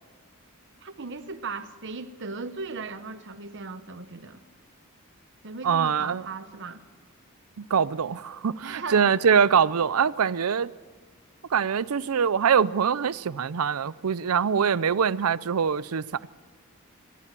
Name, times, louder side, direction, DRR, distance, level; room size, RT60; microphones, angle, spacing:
voice 1, 0.8-4.4 5.4-6.8 8.6-9.2, right 4 dB, 55° right, 0.9 m, -37 dB
voice 2, 5.6-6.2 7.7-10.7 11.5-16.0, right 7 dB, 80° right, 0.5 m, -23 dB
23.0 x 15.0 x 7.5 m
head